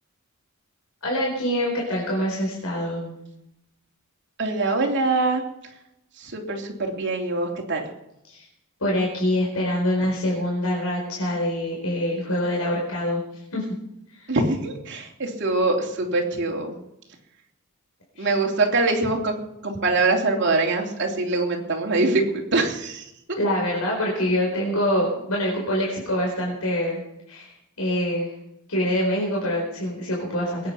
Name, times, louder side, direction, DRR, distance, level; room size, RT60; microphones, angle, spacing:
voice 1, 1.0-3.1 8.3-8.4 8.8-13.2 13.5-13.6 14.1-14.3 18.2-18.3 23.4-27.0 27.3-27.5 27.8-28.3 28.7-30.7, equal, 85° left, -2 dB, 4.6 m, -25 dB
voice 2, 4.4-5.4 6.2-7.9 14.3-16.7 18.2-19.4 19.6-23.0, right 3 dB, 55° right, 1 dB, 3.1 m, -23 dB
21.5 x 9.6 x 5.7 m, 0.84 s
head